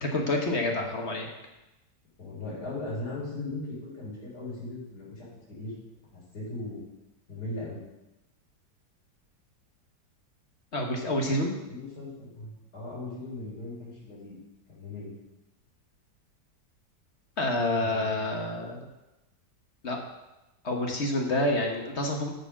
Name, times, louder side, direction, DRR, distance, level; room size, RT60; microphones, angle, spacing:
voice 1, 0.0-1.3 10.7-11.5 17.4-18.8 19.8-20.0 20.6-22.3, left 1 dB, 45° left, 2 dB, 1.4 m, -28 dB
voice 2, 2.2-5.7 6.1-6.9 7.3-7.8 11.7-14.4 14.7-15.1 17.8-18.5, left 2 dB, 65° left, -6 dB, 4.8 m, -38 dB
9.1 x 6.8 x 6.0 m, 0.99 s
omnidirectional pair, 1.9 m